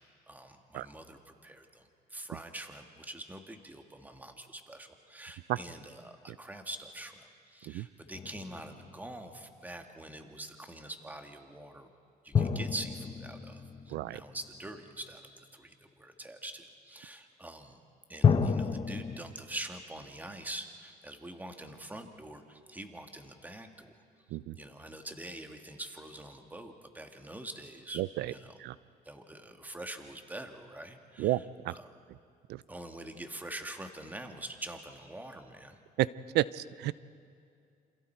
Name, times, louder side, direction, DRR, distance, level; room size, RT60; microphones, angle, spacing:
voice 1, 0.3-1.8 2.1-11.9 12.2-17.8 18.1-23.9 24.5-28.0 28.3-28.5 29.0-31.3 31.8-31.9 32.7-35.8, right 1 dB, 10° right, 5 dB, 1.8 m, -45 dB
sound 1, 8.1-9.5 12.3-14.9 18.2-19.2, left 6 dB, 30° left, 0.9 m, -30 dB
voice 2, 13.9-14.2 24.3-24.6 27.9-28.3 28.6-28.8 31.2-31.7 32.1-32.2 32.5-32.6 36.0-36.1 36.3-36.9, right 16 dB, 80° right, 19 dB, 0.6 m, -31 dB
28.5 x 27.0 x 4.6 m, 2.4 s
cardioid pair, 110°, 17 cm